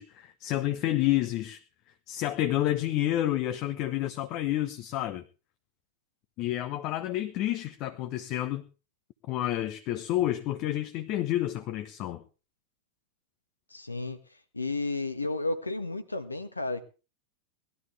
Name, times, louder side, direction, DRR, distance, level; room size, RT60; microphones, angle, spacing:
voice 1, 0.0-1.6 2.1-5.2 6.4-8.6 9.3-12.2, left 14 dB, 40° left, 1.0 m, -29 dB
voice 2, 13.7-16.9, left 2 dB, 80° left, 1.5 m, -33 dB
19.0 x 13.0 x 3.4 m
figure-of-eight pair, 90°, 0 cm